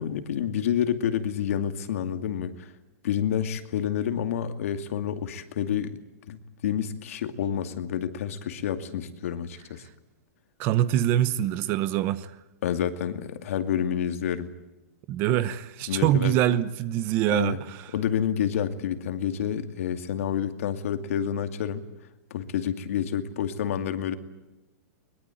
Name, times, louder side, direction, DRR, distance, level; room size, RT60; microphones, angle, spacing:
voice 1, 0.0-2.7 3.0-6.0 6.3-9.8 12.6-14.5 15.9-16.4 17.3-17.6 17.9-21.8 22.3-24.1, left 9 dB, 55° left, 2.5 m, -29 dB
voice 2, 10.6-12.4 15.1-17.9, right 12 dB, 25° right, 0.9 m, -24 dB
23.5 x 22.0 x 9.3 m
supercardioid pair, 175°, 9 cm